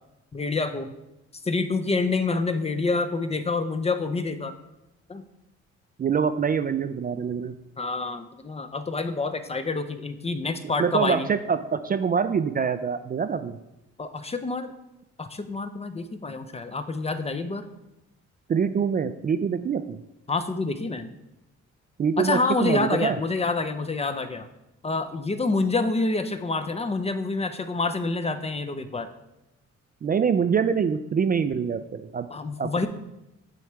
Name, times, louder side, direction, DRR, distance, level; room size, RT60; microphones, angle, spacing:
voice 1, 0.3-0.9 1.4-4.5 5.1-5.2 7.8-11.3 14.0-14.7 15.2-17.6 20.3-21.1 22.2-24.5 24.8-29.1 32.3-32.9, left 3 dB, 20° left, 9 dB, 0.5 m, -27 dB
voice 2, 6.0-7.5 10.8-13.6 18.5-20.0 22.0-23.2 30.0-32.3 32.6-32.9, right 6 dB, 30° right, 9 dB, 0.3 m, -25 dB
9.2 x 3.1 x 4.5 m, 0.93 s
cardioid pair, 90°, 30 cm